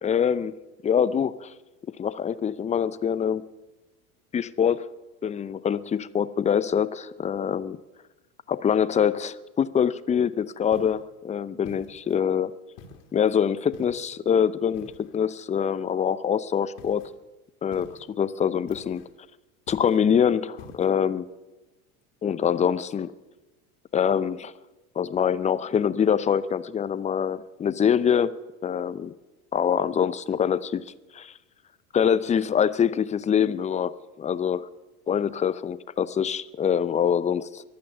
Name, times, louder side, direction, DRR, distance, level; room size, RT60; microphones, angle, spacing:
voice 1, 0.0-0.5 0.8-1.5 2.0-3.4 4.3-4.9 5.2-7.8 8.5-12.5 13.1-17.0 17.6-19.0 19.7-21.3 22.2-23.1 23.9-24.5 25.0-28.4 28.6-29.1 29.5-30.8 31.1-31.3 31.9-33.9 34.2-34.7 35.1-37.6, left 8 dB, 15° left, 16 dB, 0.6 m, -24 dB
sound 1, 10.7-11.1 11.7-12.2 12.8-13.2 13.7-14.2 14.7-15.3 16.8-17.1 17.7-18.1 18.7-19.1 19.7-20.1 20.6-20.9, left 4 dB, 55° left, 2.5 m, -48 dB
23.5 x 8.6 x 6.8 m, 1.1 s
figure-of-eight pair, 80°, 44 cm